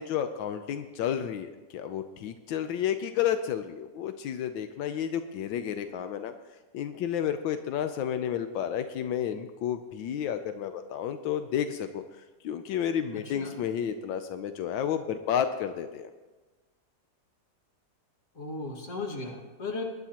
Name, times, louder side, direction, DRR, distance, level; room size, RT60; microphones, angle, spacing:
voice 1, 0.0-6.3 6.7-12.0 12.4-16.1, left 9 dB, 85° left, 9 dB, 1.4 m, -31 dB
voice 2, 13.1-13.5 18.3-19.8, left 3 dB, 40° left, 0 dB, 2.1 m, -36 dB
21.5 x 11.0 x 2.9 m, 1.2 s
omnidirectional pair, 2.0 m